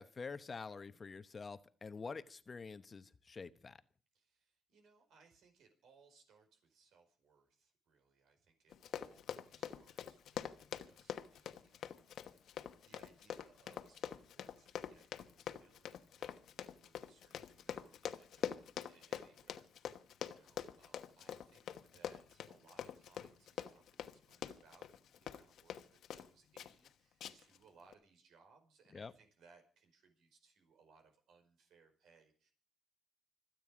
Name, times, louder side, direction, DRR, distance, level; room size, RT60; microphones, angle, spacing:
voice 1, 0.0-3.8 28.9-29.1, left 4 dB, 35° left, 13 dB, 0.9 m, -47 dB
voice 2, 4.1-25.8 26.1-32.5, right 5 dB, 75° right, 5 dB, 5.0 m, -68 dB
Run, 8.7-26.3 26.6-26.9 27.2-27.6 27.9-28.0, left 9 dB, 75° left, 1.2 m, -45 dB
26.0 x 9.2 x 5.0 m, 0.43 s
cardioid pair, 90°, 0 cm